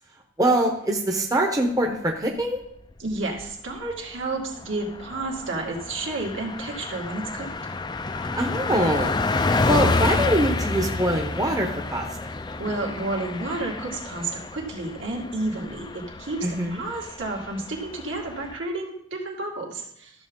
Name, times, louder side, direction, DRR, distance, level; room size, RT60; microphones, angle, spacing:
voice 1, 0.4-2.6 8.4-9.2 9.7-12.0 16.4-16.8, right 1 dB, 20° right, 1 dB, 0.8 m, -23 dB
Car passing by, 2.9-3.5 3.9-4.0 4.3-18.6, left 3 dB, 20° left, 0.4 m, -29 dB
voice 2, 3.0-7.5 12.6-16.5 16.7-20.1, right 2 dB, 75° right, -1 dB, 2.2 m, -31 dB
13.5 x 7.1 x 3.7 m, 0.73 s
head